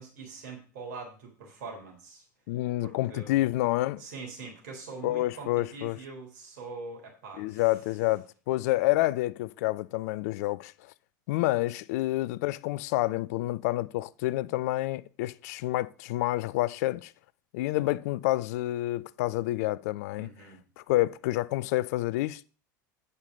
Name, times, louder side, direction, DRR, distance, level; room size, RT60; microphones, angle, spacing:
voice 1, 0.0-2.3 2.8-3.4 4.0-7.6 20.2-20.6, right 4 dB, 55° right, 3.7 m, -43 dB
voice 2, 2.5-4.0 5.0-6.0 7.4-10.7 11.3-17.1 17.5-20.3 20.9-22.4, left 17 dB, 55° left, 0.5 m, -28 dB
8.2 x 6.7 x 6.4 m
figure-of-eight pair, 75°, 10 cm